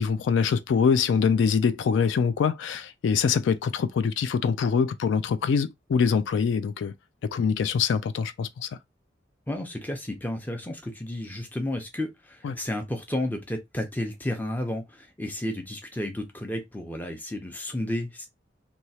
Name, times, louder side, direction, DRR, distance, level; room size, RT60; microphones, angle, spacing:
voice 1, 0.0-6.9 7.3-8.7 12.4-12.6, left 6 dB, 75° left, 0.3 m, -24 dB
voice 2, 9.5-18.3, left 1 dB, 10° left, 0.6 m, -32 dB
3.0 x 2.3 x 2.7 m
head